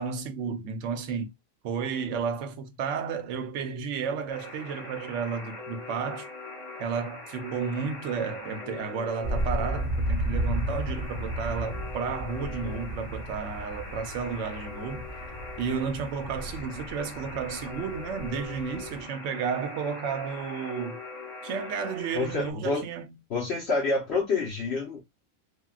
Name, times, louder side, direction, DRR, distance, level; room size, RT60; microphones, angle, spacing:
voice 1, 0.0-1.3 1.6-6.3 6.8-15.1 15.6-21.0 21.4-23.1, right 6 dB, 70° right, 0.9 m, -32 dB
Alarm, 4.3-22.5, left 3 dB, 30° left, 0.8 m, -42 dB
sound 1, 9.2-19.0, equal, 10° left, 1.1 m, -33 dB
voice 2, 22.1-22.8 23.3-25.0, left 3 dB, 55° left, 1.1 m, -27 dB
3.5 x 2.2 x 2.3 m
omnidirectional pair, 1.4 m